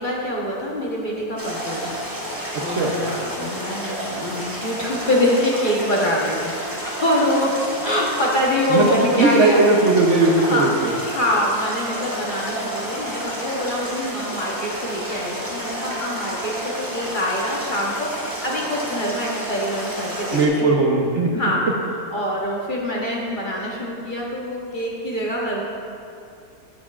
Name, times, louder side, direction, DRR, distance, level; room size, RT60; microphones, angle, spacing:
voice 1, 0.0-9.6 10.4-20.7 21.3-21.6 22.1-25.6, left 1 dB, 35° left, -4 dB, 1.1 m, -25 dB
sound 1, 1.4-20.5, equal, 15° right, 1.3 m, -30 dB
voice 2, 8.7-10.7 20.3-21.3, right 2 dB, 60° right, -1 dB, 1.0 m, -17 dB
13.5 x 7.0 x 2.4 m, 2.4 s
omnidirectional pair, 1.6 m